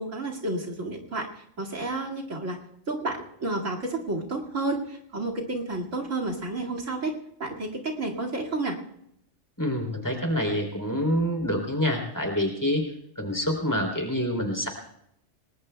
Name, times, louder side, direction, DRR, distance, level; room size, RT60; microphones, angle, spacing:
voice 1, 0.0-2.6 2.9-7.1 7.4-8.8, right 2 dB, 90° right, 3 dB, 2.6 m, -31 dB
voice 2, 9.6-12.8 13.2-14.7, equal, 15° left, 3 dB, 3.3 m, -26 dB
28.0 x 20.0 x 2.3 m, 0.75 s
omnidirectional pair, 1.3 m